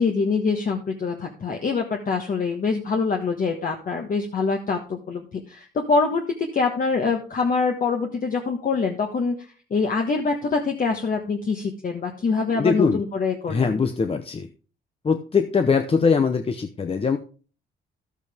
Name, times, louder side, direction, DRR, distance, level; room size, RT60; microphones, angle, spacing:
voice 1, 0.0-9.4 9.7-13.7, left 4 dB, 45° left, 2 dB, 1.4 m, -24 dB
voice 2, 12.5-13.0 13.5-14.5 15.0-17.2, left 5 dB, 30° left, 7 dB, 0.8 m, -22 dB
12.0 x 8.2 x 3.6 m, 0.38 s
cardioid pair, 90°, 20 cm